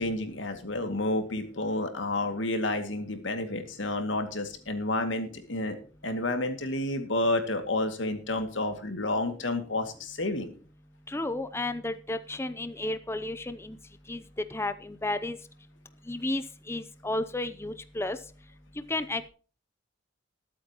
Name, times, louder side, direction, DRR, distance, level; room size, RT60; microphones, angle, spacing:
voice 1, 0.0-5.8 6.0-10.5, left 2 dB, 85° left, 7 dB, 2.3 m, -30 dB
voice 2, 11.1-13.8 14.1-14.2 14.5-15.4 16.1-18.2 18.9-19.3, left 2 dB, 15° left, 12 dB, 0.6 m, -32 dB
21.0 x 8.6 x 3.0 m, 0.40 s
head